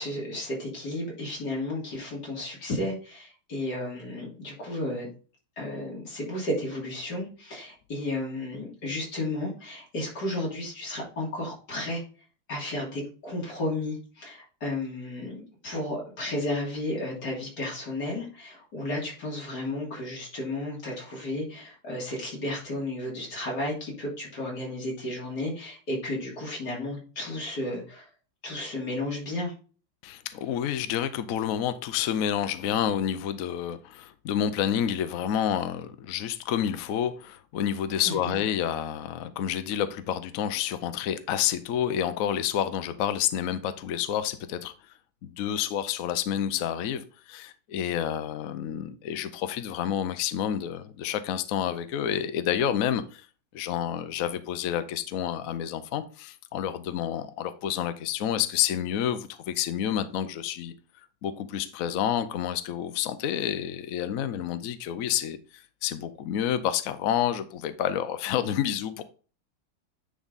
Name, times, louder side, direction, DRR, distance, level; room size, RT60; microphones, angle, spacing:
voice 1, 0.0-5.1 5.6-12.0 12.5-28.1 28.4-29.5 38.0-38.3, left 1 dB, 55° left, 3.5 m, -33 dB
voice 2, 30.0-44.7 45.2-53.3 53.5-60.7 61.2-69.0, left 10 dB, 75° left, 0.7 m, -29 dB
9.7 x 3.6 x 4.0 m
omnidirectional pair, 2.1 m